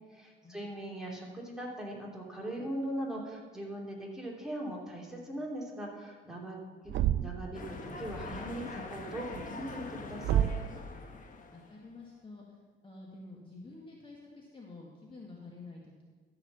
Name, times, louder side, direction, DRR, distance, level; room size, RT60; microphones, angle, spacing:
voice 1, 0.1-6.6 6.9-10.5, right 1 dB, 5° right, -3 dB, 3.0 m, -40 dB
Thump thud, 6.9-7.5 10.2-10.8, right 11 dB, 70° right, 0.4 m, -28 dB
sound 1, 7.5-11.8, left 4 dB, 40° left, 1.3 m, -43 dB
voice 2, 11.5-12.4 12.8-16.1, left 3 dB, 25° left, -3 dB, 1.8 m, -49 dB
14.0 x 4.9 x 7.0 m, 1.4 s
cardioid pair, 90°, 20 cm